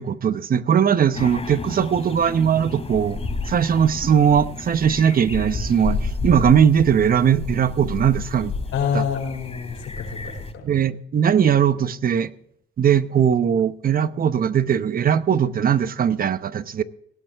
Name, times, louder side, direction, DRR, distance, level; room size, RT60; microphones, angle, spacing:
voice 1, 0.0-3.2 3.5-8.5 8.9-9.0 10.6-12.3 12.8-16.8, right 8 dB, 45° right, 0.8 m, -19 dB
sound 1, 1.1-10.5, left 4 dB, 30° left, 3.1 m, -31 dB
voice 2, 8.7-10.6, left 7 dB, 85° left, 5.1 m, -27 dB
18.0 x 12.0 x 3.5 m
cardioid pair, 90°, 20 cm